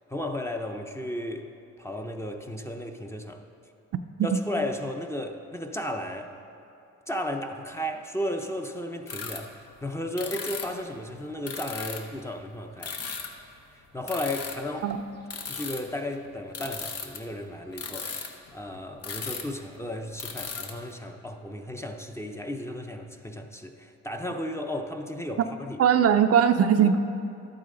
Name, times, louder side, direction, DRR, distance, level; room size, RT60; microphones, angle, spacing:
voice 1, 0.1-1.5 1.8-3.4 4.2-6.3 7.1-13.0 13.9-14.9 15.5-25.8 26.8-26.9, left 1 dB, 10° left, 4 dB, 0.7 m, -34 dB
sound 1, 9.1-9.4 9.7-9.8 10.2-10.8 11.5-12.2 12.8-13.4 13.8-17.2 17.6-19.6 19.8-19.9 20.1-20.7, left 5 dB, 55° left, 1.0 m, -36 dB
voice 2, 25.8-27.0, right 8 dB, 55° right, 8 dB, 0.5 m, -20 dB
12.0 x 8.7 x 3.9 m, 2.7 s
cardioid pair, 90°, 30 cm